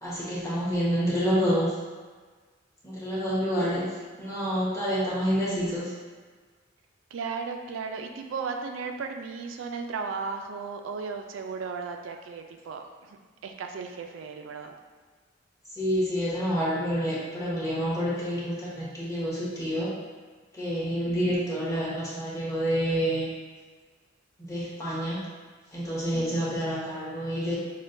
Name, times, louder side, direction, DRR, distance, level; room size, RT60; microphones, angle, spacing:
voice 1, 0.0-1.7 2.8-3.8 4.2-5.9 15.7-19.9 20.5-23.3 24.4-25.2 25.7-27.6, equal, 15° left, -8 dB, 1.1 m, -28 dB
voice 2, 3.6-3.9 7.1-13.2 13.4-14.7 26.1-26.5, right 5 dB, 85° right, 4 dB, 0.4 m, -36 dB
6.1 x 2.2 x 2.6 m, 1.5 s
head